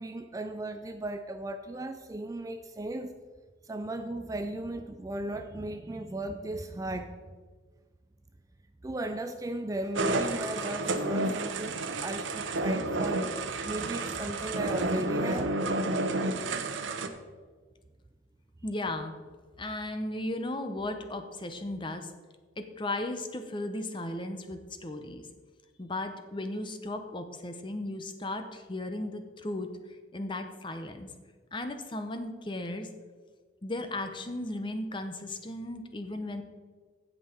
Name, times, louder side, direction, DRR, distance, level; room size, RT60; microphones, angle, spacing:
voice 1, 0.0-3.1 3.6-7.2 8.8-13.3 13.7-15.6, right 1 dB, 15° right, 8 dB, 0.3 m, -36 dB
sound 1, 10.0-17.1, right 2 dB, 85° right, 0.8 m, -30 dB
voice 2, 18.6-19.1 19.6-22.1 22.6-25.2 25.8-29.7 30.1-31.1 31.5-32.9 33.6-36.4, left 1 dB, 25° left, 7 dB, 0.8 m, -36 dB
16.0 x 5.4 x 4.4 m, 1.5 s
head